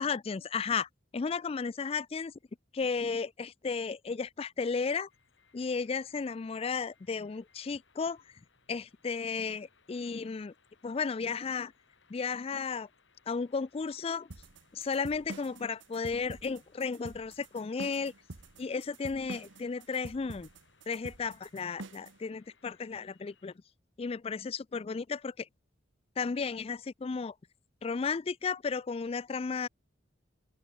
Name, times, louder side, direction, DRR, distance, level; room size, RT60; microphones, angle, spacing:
voice 1, 0.0-2.3 2.7-5.1 5.5-8.2 8.7-10.5 10.8-11.7 12.1-12.9 13.3-14.3 14.7-18.1 18.6-20.5 20.9-23.5 24.0-25.5 26.2-27.3 27.8-29.7, left 5 dB, 30° left, 0.4 m, -34 dB
sound 1, 5.1-23.6, left 5 dB, 80° left, 3.5 m, -68 dB
sound 2, 14.3-22.2, right 2 dB, 85° right, 1.4 m, -46 dB
open air
head